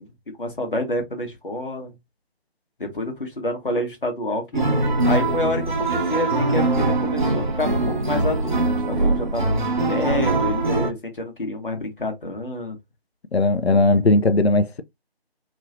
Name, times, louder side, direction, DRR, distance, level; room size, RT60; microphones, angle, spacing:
voice 1, 0.4-2.0 2.8-4.6 5.1-12.8, left 1 dB, 60° left, 1.3 m, -28 dB
sound 1, 4.5-10.9, right 2 dB, 50° right, 0.9 m, -22 dB
voice 2, 13.3-14.8, left 2 dB, 85° left, 0.6 m, -18 dB
3.1 x 2.9 x 2.5 m
figure-of-eight pair, 155°, 31 cm